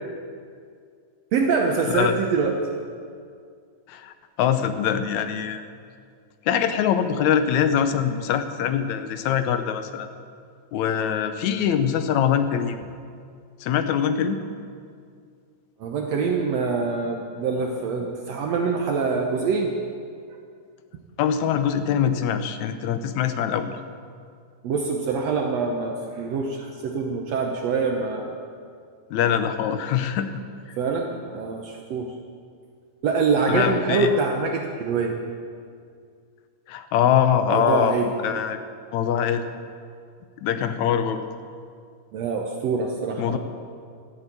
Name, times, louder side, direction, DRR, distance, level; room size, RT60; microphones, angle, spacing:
voice 1, 1.3-2.5 15.8-19.7 24.6-28.4 30.8-32.1 33.0-35.2 37.4-38.1 42.1-43.4, right 4 dB, 65° right, 2 dB, 2.0 m, -25 dB
voice 2, 3.9-5.6 6.5-10.1 10.7-12.8 13.6-14.4 21.2-23.7 29.1-30.3 30.7-30.8 33.5-34.1 36.7-37.9 38.2-38.6 38.9-39.5 40.4-41.2 43.2-43.4, left 8 dB, 75° left, 9 dB, 2.2 m, -23 dB
13.5 x 11.0 x 8.5 m, 2.2 s
omnidirectional pair, 3.4 m